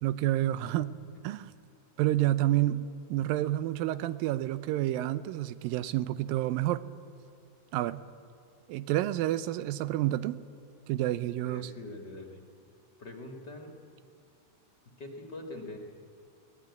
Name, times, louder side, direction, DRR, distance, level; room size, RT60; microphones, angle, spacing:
voice 1, 0.0-0.9 1.2-1.5 2.0-6.8 7.7-8.0 8.7-10.4 10.9-11.7, right 14 dB, 90° right, 15 dB, 2.5 m, -29 dB
voice 2, 11.5-12.4 13.0-13.7 15.0-15.8, left 2 dB, 40° left, 2 dB, 1.8 m, -43 dB
21.0 x 17.0 x 9.5 m, 2.3 s
omnidirectional pair, 4.0 m